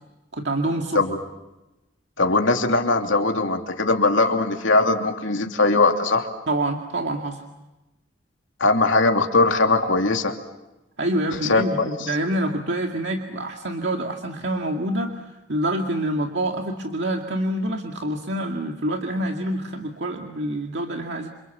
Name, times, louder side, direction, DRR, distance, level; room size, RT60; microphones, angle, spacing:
voice 1, 0.3-1.0 6.5-7.4 11.0-21.3, right 1 dB, 60° right, 2 dB, 2.1 m, -26 dB
voice 2, 2.2-6.3 8.6-10.4 11.5-12.0, left 3 dB, 75° left, 3 dB, 2.9 m, -20 dB
28.5 x 27.5 x 7.3 m, 0.99 s
head